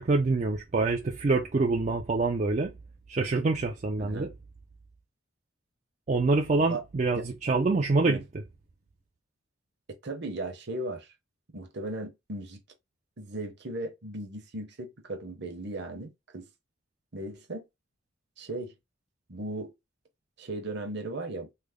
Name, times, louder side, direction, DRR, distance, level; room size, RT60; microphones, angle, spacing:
voice 1, 0.0-2.7 3.1-4.3 6.1-8.2, right 3 dB, 35° right, 0.4 m, -26 dB
voice 2, 4.0-4.3 6.5-6.8 7.1-7.3 8.1-8.2 10.0-11.1 11.5-12.6 13.2-16.5 17.1-17.6 18.4-18.7 19.3-19.7 20.4-21.5, right 2 dB, 50° right, 0.8 m, -37 dB
3.3 x 2.1 x 3.5 m
head